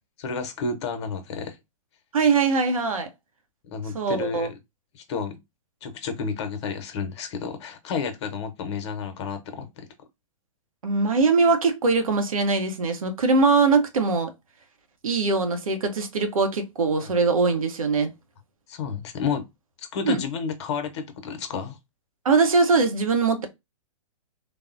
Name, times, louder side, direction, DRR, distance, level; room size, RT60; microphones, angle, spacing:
voice 1, 0.2-1.6 3.7-4.5 4.9-5.4 5.8-9.9 17.0-17.1 18.7-19.5 19.8-21.8, left 5 dB, 55° left, 0.7 m, -31 dB
voice 2, 2.1-3.1 3.9-4.5 10.8-14.3 15.0-18.1 20.0-20.2 22.2-23.5, right 4 dB, 85° right, 0.8 m, -22 dB
3.4 x 2.1 x 2.4 m
hypercardioid pair, 125°, 17 cm